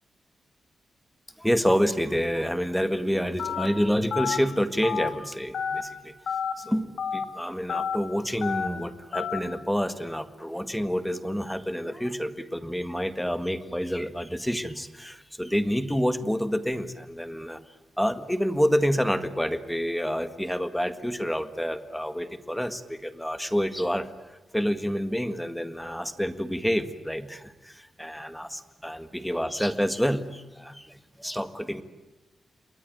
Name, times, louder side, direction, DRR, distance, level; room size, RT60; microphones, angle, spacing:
voice 1, 1.4-6.1 6.6-17.6 18.0-24.1 24.5-28.5 28.8-30.9 31.2-31.8, equal, ahead, 10 dB, 1.8 m, -28 dB
Telephone, 3.4-3.7 4.1-4.4 4.8-5.1 5.5-5.8 6.3-6.5 7.0-7.2 7.7-8.0 8.4-8.7 9.1-9.4, left 7 dB, 70° left, 3.1 m, -29 dB
28.5 x 21.0 x 9.3 m, 1.2 s
wide cardioid pair, 120°, 0 cm